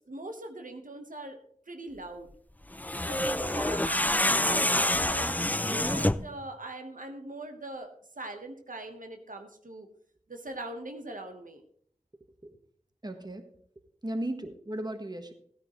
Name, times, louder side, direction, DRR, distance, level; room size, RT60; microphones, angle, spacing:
voice 1, 0.1-1.4 1.7-2.3 3.0-7.9 8.2-9.9 10.3-11.6, right 2 dB, 85° right, 5 dB, 1.2 m, -41 dB
sound 1, 2.7-6.3, left 1 dB, 10° left, 0.4 m, -27 dB
voice 2, 13.0-13.4 14.0-15.3, right 1 dB, 30° right, 7 dB, 1.4 m, -35 dB
16.0 x 9.9 x 3.1 m, 0.63 s
wide cardioid pair, 45°, 14 cm